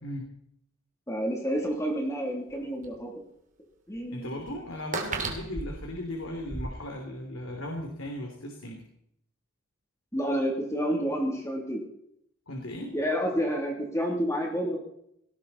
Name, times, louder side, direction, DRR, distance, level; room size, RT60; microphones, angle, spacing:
voice 1, 1.1-3.1 3.9-4.4 10.1-11.8 12.9-14.8, equal, 15° left, 0 dB, 3.0 m, -29 dB
sound 1, 1.6-1.7 2.5-2.6 2.8-3.0 4.0-4.1 4.5-6.7, right 3 dB, 40° right, 2.7 m, -34 dB
voice 2, 4.1-8.8 12.5-12.9, left 1 dB, 70° left, 2 dB, 3.0 m, -37 dB
18.5 x 17.0 x 4.2 m, 0.73 s
head